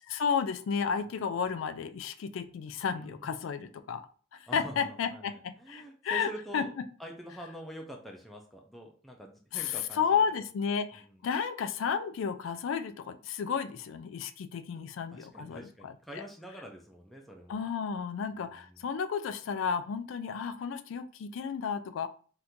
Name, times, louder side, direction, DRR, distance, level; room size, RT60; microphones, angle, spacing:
voice 1, 0.1-4.1 4.5-6.7 9.5-15.9 17.5-22.1, left 6 dB, 75° left, 11 dB, 0.3 m, -32 dB
voice 2, 2.9-3.3 4.5-6.7 7.0-10.4 10.9-11.2 15.1-17.6 18.4-18.9, right 1 dB, ahead, 0 dB, 0.4 m, -46 dB
2.8 x 2.5 x 3.5 m, 0.42 s
head